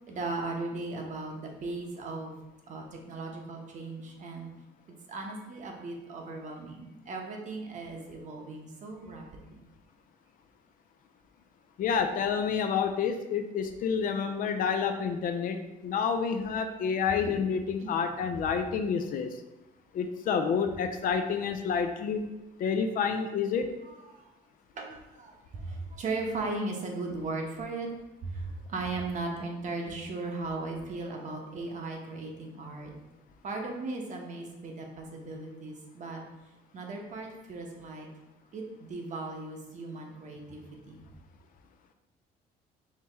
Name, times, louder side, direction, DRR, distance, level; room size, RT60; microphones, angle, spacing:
voice 1, 0.1-2.3 2.7-4.5 5.1-9.6 17.3-17.4 17.8-18.0 23.8-24.3 24.7-27.9 28.2-32.9 33.4-36.2 36.7-38.1 38.5-41.0, right 3 dB, 45° right, 1 dB, 0.9 m, -37 dB
voice 2, 11.8-19.4 19.9-22.2 22.6-23.7, left 6 dB, 55° left, 7 dB, 0.4 m, -29 dB
4.6 x 2.8 x 3.5 m, 1.0 s
cardioid pair, 110°, 17 cm